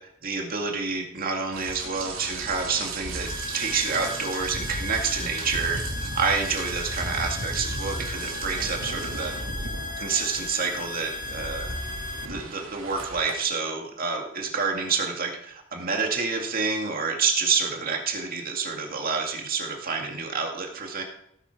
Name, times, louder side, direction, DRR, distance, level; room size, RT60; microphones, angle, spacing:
voice 1, 0.2-9.3 10.0-11.7 12.3-21.0, right 5 dB, 45° right, 2 dB, 2.2 m, -28 dB
Rain, 1.5-13.3, right 2 dB, 90° right, 2.7 m, -35 dB
sound 1, 3.3-12.3, left 3 dB, 40° left, 1.1 m, -36 dB
17.5 x 8.9 x 4.7 m, 0.75 s
head